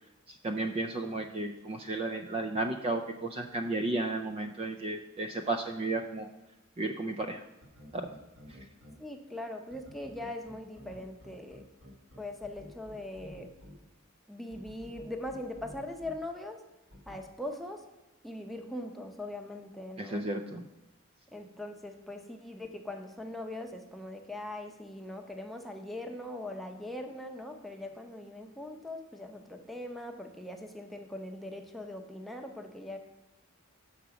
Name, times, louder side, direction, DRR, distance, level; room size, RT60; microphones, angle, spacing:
voice 1, 0.3-6.3 6.8-7.4 7.9-8.1 20.0-20.6, right 2 dB, 30° right, 6 dB, 0.4 m, -33 dB
sound 1, 7.6-8.9 9.7-13.7 14.5-16.1 16.9-17.2, left 1 dB, 55° right, 1.8 m, -51 dB
voice 2, 9.0-11.6 12.2-13.5 14.3-16.6 17.1-17.8 18.2-20.3 21.3-33.0, left 1 dB, ahead, 3 dB, 0.7 m, -41 dB
7.0 x 6.0 x 4.8 m, 1.0 s
head